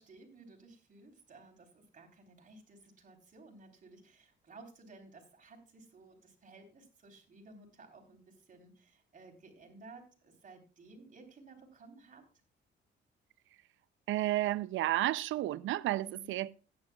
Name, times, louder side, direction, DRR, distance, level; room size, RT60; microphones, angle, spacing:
voice 1, 0.0-12.2 16.0-16.3, right 3 dB, 40° right, 3.8 m, -56 dB
voice 2, 14.1-16.5, right 15 dB, 80° right, 0.5 m, -32 dB
16.0 x 10.0 x 2.3 m
cardioid pair, 90°, 20 cm